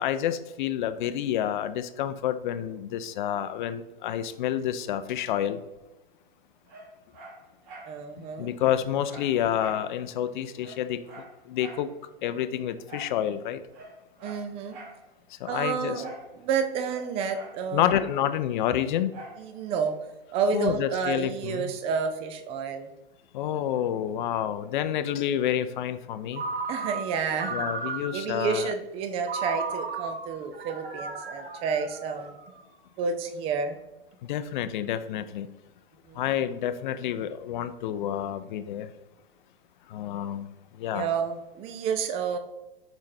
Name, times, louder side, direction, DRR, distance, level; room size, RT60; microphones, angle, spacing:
voice 1, 0.0-5.6 8.2-11.0 11.5-11.9 12.2-13.6 15.4-16.0 17.7-19.2 20.5-21.7 23.3-26.4 27.5-28.7 34.2-35.5 36.1-38.9 39.9-41.1, left 10 dB, 55° left, 12 dB, 0.4 m, -29 dB
Dog, 6.7-8.0 8.3-8.4 8.6-9.9 10.2-10.3 10.6-11.9 12.9-13.2 13.7-15.0 16.0-16.3 16.6-18.1 19.1-19.4 19.9-20.0, right 2 dB, 50° right, 1.3 m, -45 dB
voice 2, 7.9-8.5 14.2-14.8 15.5-17.9 19.4-20.0 20.3-22.9 26.7-27.7 28.1-32.3 33.0-33.8 36.1-36.2 40.9-42.4, right 6 dB, 20° right, 8 dB, 0.3 m, -30 dB
Ringtone, 26.3-28.4 29.2-32.6, right 4 dB, 75° right, 1.0 m, -35 dB
5.0 x 3.7 x 2.7 m, 1.0 s
hypercardioid pair, 115°, 30 cm